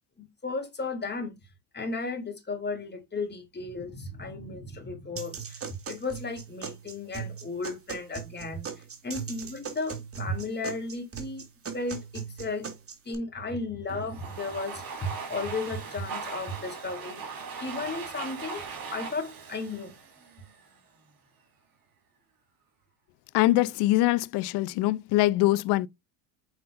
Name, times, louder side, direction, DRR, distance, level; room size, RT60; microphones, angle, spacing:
voice 1, 0.2-1.4 1.7-5.6 5.9-8.7 9.0-11.5 11.7-12.7 13.0-17.2 17.6-18.6 18.9-19.9, left 3 dB, 20° left, 3.3 m, -34 dB
sound 1, 5.2-13.1, right 6 dB, 30° right, 2.3 m, -39 dB
Domestic sounds home sounds, 13.9-20.8, right 5 dB, 45° right, 3.7 m, -39 dB
voice 2, 23.3-25.9, left 17 dB, 60° left, 0.7 m, -23 dB
8.1 x 4.9 x 2.6 m
supercardioid pair, 90°, 46 cm